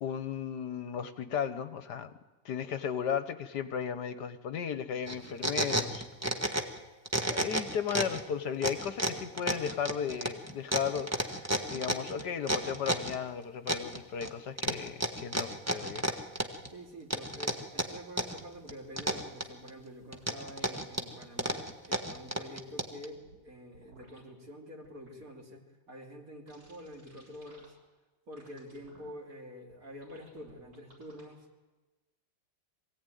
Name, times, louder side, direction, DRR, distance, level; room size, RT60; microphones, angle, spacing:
voice 1, 0.0-2.1 2.4-6.0 6.5-6.6 7.3-11.4 11.7-16.1, left 7 dB, 65° left, 10 dB, 1.5 m, -35 dB
sound 1, 5.1-6.8 7.1-8.2 8.6-13.2 13.7-14.3 14.6-16.7 17.1-18.4 18.7-19.7 20.1-23.1, right 1 dB, 10° right, 1.2 m, -31 dB
sound 2, 16.3-16.8 18.3-19.0 19.4-19.5 19.8-20.4 23.1-23.4 23.7-24.2 24.8-25.3 26.5-27.7 28.3-29.1 29.7-29.8 30.0-31.2, right 2 dB, 70° right, 7.6 m, -58 dB
voice 2, 16.7-27.7 28.3-31.4, equal, 50° right, 1 dB, 3.2 m, -47 dB
23.5 x 16.5 x 9.2 m, 1.2 s
omnidirectional pair, 2.0 m